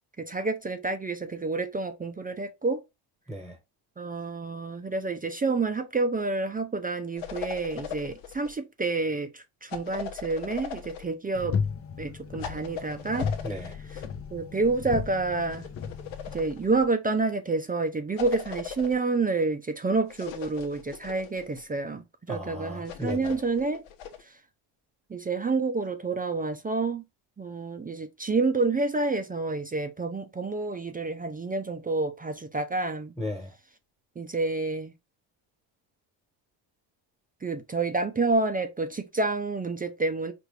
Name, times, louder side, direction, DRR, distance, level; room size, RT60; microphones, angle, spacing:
voice 1, 0.2-2.8 4.0-11.6 12.0-13.3 13.9-14.0 14.3-15.7 16.3-23.8 24.2-24.3 25.1-27.0 27.4-33.1 34.2-34.9 37.4-40.3, right 3 dB, 20° right, 0.5 m, -29 dB
sound 1, 7.2-8.5 9.7-11.1 12.4-14.1 15.5-16.9 18.2-19.0 20.1-21.6 22.9-24.2, left 8 dB, 70° left, 1.1 m, -39 dB
sound 2, 11.3-16.5, left 6 dB, 30° left, 0.6 m, -34 dB
voice 2, 13.4-13.8 22.3-23.4 33.2-33.5, left 1 dB, ahead, 1.1 m, -35 dB
4.9 x 2.6 x 3.3 m
cardioid pair, 95°, 48 cm